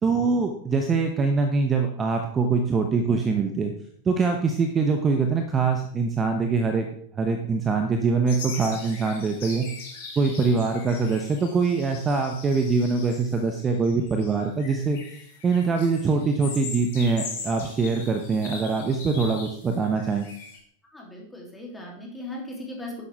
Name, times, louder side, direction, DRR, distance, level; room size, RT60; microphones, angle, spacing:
voice 1, 0.0-3.7 4.0-6.9 7.1-9.7 10.2-15.0 15.4-20.3, right 4 dB, 20° right, 6 dB, 1.0 m, -23 dB
sound 1, 8.3-20.6, left 4 dB, 55° left, 2.4 m, -40 dB
voice 2, 20.9-23.0, left 1 dB, 10° left, -2 dB, 3.1 m, -38 dB
10.5 x 8.3 x 3.5 m, 0.63 s
figure-of-eight pair, 90°, 0 cm